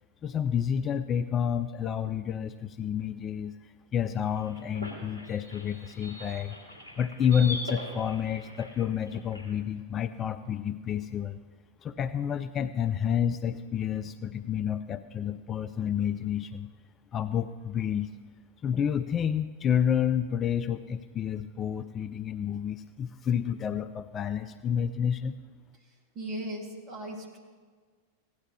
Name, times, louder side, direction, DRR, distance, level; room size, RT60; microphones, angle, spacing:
voice 1, 0.2-3.6 3.9-6.6 7.0-11.4 11.8-16.7 17.1-18.1 18.6-25.4, left 8 dB, 25° left, 12 dB, 0.3 m, -29 dB
sound 1, 4.0-9.5, left 1 dB, 80° right, 2.5 m, -42 dB
voice 2, 26.2-27.4, right 1 dB, 30° right, -1 dB, 2.3 m, -37 dB
16.5 x 10.5 x 3.1 m, 1.5 s
figure-of-eight pair, 90°, 0 cm